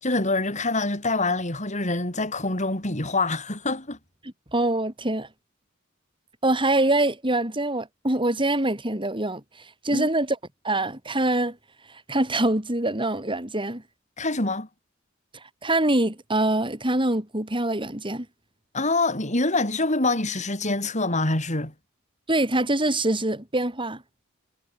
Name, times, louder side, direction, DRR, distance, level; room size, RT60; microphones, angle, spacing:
voice 1, 0.0-4.0 9.9-10.1 14.2-14.7 18.7-21.7, left 2 dB, 35° left, 5.9 m, -25 dB
voice 2, 4.5-5.3 6.4-10.4 10.6-11.6 12.1-13.8 15.6-18.3 22.3-24.0, right 1 dB, 25° right, 5.7 m, -24 dB
head